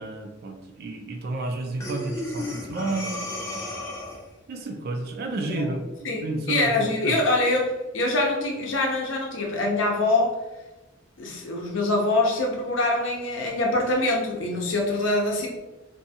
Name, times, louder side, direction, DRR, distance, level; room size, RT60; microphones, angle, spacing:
voice 1, 0.0-3.2 4.5-7.2, right 2 dB, 55° right, 4 dB, 0.4 m, -31 dB
Breathing, 1.8-4.4, left 1 dB, 15° left, 0.4 m, -33 dB
voice 2, 6.0-10.4 11.2-15.5, left 2 dB, 75° left, 0 dB, 0.6 m, -24 dB
2.6 x 2.2 x 2.7 m, 1.1 s
head